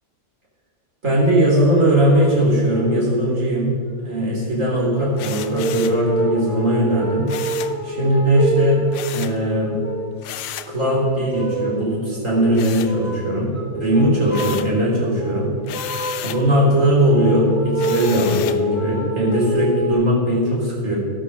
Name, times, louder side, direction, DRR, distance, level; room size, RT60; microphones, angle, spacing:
voice 1, 1.0-7.3 7.8-8.8 9.1-9.7 10.7-13.5 13.8-15.5 16.2-21.0, equal, 50° right, -4 dB, 4.0 m, -19 dB
sound 1, 1.5-2.4 2.6-3.1 3.9-4.0 4.9-10.2 10.6-11.8 12.1-12.5 12.8-13.3 13.5-14.7 15.0-19.9, right 1 dB, 10° left, 3.3 m, -27 dB
sound 2, 5.2-6.0 7.3-7.8 8.9-9.4 10.2-10.8 12.5-13.4 13.8-14.8 15.6-16.5 17.8-18.7, left 12 dB, 90° left, 1.2 m, -34 dB
13.0 x 11.5 x 6.3 m, 2.1 s
omnidirectional pair, 1.7 m